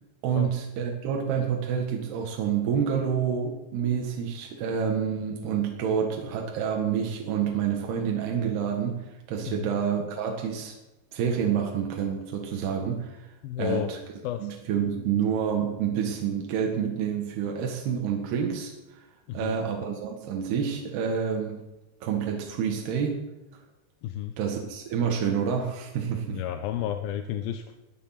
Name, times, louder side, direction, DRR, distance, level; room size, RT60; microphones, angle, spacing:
voice 1, 0.2-10.8 11.1-13.3 13.6-14.0 14.4-19.0 19.3-21.6 22.0-23.2 24.4-26.4, right 7 dB, 80° right, 1 dB, 3.7 m, -28 dB
voice 2, 13.4-13.9 14.2-14.5 19.3-19.6 24.0-24.3 26.3-27.8, left 11 dB, 75° left, 7 dB, 2.5 m, -31 dB
21.0 x 11.0 x 5.9 m, 1.0 s
omnidirectional pair, 4.7 m